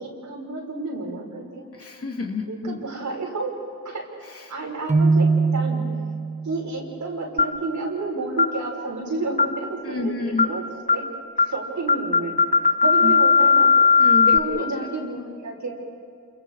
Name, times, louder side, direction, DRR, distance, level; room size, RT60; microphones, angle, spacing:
voice 1, 0.0-1.6 2.4-3.5 3.8-4.1 4.5-5.8 6.4-11.0 11.5-12.4 12.8-13.7 14.3-15.7, right 3 dB, 65° right, -1 dB, 6.1 m, -30 dB
voice 2, 1.7-2.8 9.8-10.5 13.0-13.1 14.0-14.7, left 3 dB, 45° left, 2 dB, 2.9 m, -28 dB
Keyboard (musical), 4.9-6.7, right 4 dB, 20° right, 0.9 m, -21 dB
sound 1, 7.4-7.7 8.4-8.6 9.4-9.7 10.4-10.6 10.9-11.1 11.4-11.6 11.9-14.4, left 4 dB, 20° left, 0.8 m, -18 dB
28.5 x 28.5 x 5.0 m, 2.3 s
cardioid pair, 75°, 32 cm